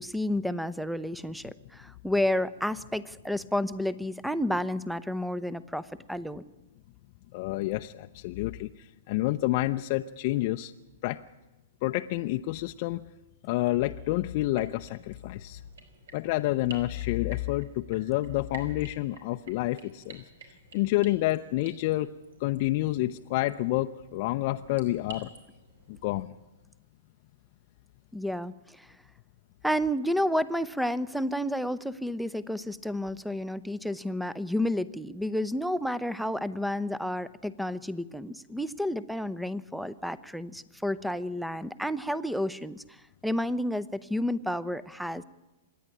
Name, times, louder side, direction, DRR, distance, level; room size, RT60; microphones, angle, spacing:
voice 1, 0.0-6.4 28.1-28.9 29.6-42.8 43.2-45.2, left 1 dB, ahead, 17 dB, 0.7 m, -31 dB
voice 2, 7.3-10.7 11.0-11.2 11.8-13.0 13.4-15.6 16.1-22.1 22.4-25.3 25.9-26.3, left 17 dB, 45° left, 6 dB, 0.6 m, -29 dB
sound 1, 14.5-26.2, right 4 dB, 75° right, 4.9 m, -52 dB
26.0 x 10.0 x 9.9 m, 1.1 s
hypercardioid pair, 140°, 0 cm